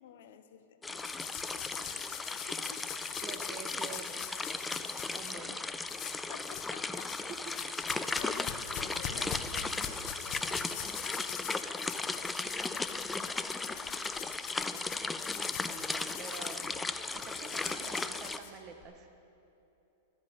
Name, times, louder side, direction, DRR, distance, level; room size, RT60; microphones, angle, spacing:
voice 1, 0.0-3.2 5.4-7.3 7.7-7.9 8.2-14.4 14.7-15.3, left 9 dB, 70° left, 10 dB, 0.9 m, -53 dB
sound 1, 0.8-18.4, left 3 dB, 10° left, 0.4 m, -36 dB
sound 2, 1.0-5.3 5.9-6.7 6.9-18.8, left 9 dB, 40° left, 1.1 m, -43 dB
voice 2, 3.2-4.3 5.1-5.6 7.9-8.0 15.5-16.7 17.1-19.1, right 6 dB, 35° right, 6 dB, 1.3 m, -47 dB
12.0 x 8.7 x 7.9 m, 2.9 s
hypercardioid pair, 140°, 0 cm